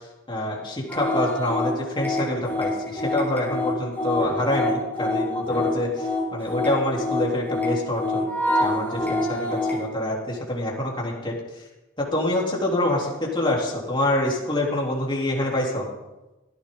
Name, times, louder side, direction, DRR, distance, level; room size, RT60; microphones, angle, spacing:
voice 1, 0.3-8.3 8.6-11.3 12.1-15.9, left 1 dB, 25° left, -3 dB, 3.6 m, -26 dB
sound 1, 0.9-9.9, left 1 dB, 10° left, 4.0 m, -26 dB
17.0 x 14.5 x 4.0 m, 1.0 s
head